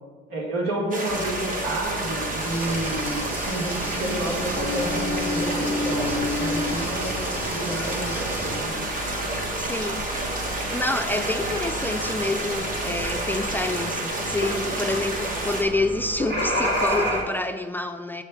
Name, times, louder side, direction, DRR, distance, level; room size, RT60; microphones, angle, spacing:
voice 1, 0.3-3.2 3.5-7.2 7.5-8.7, right 1 dB, 80° right, -2 dB, 1.8 m, -30 dB
sound 1, 0.9-15.6, right 2 dB, 40° right, 1.3 m, -30 dB
sound 2, 1.1-17.2, left 1 dB, 60° right, 2.3 m, -31 dB
sound 3, 2.4-8.6, equal, 10° right, 1.0 m, -37 dB
voice 2, 9.6-10.1 10.7-18.2, left 2 dB, 10° left, 6 dB, 0.4 m, -28 dB
7.3 x 3.3 x 5.9 m, 1.4 s
supercardioid pair, 80°, 21 cm